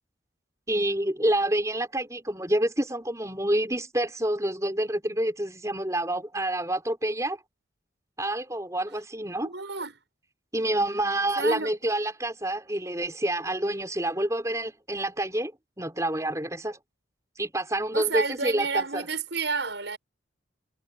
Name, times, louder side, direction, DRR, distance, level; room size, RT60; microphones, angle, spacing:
voice 1, 0.7-7.4 8.2-9.5 10.5-15.5 15.8-16.8 17.4-19.0, right 1 dB, 15° right, 5.2 m, -28 dB
voice 2, 9.4-10.0 11.3-11.7 17.9-20.0, right 4 dB, 70° right, 6.9 m, -30 dB
head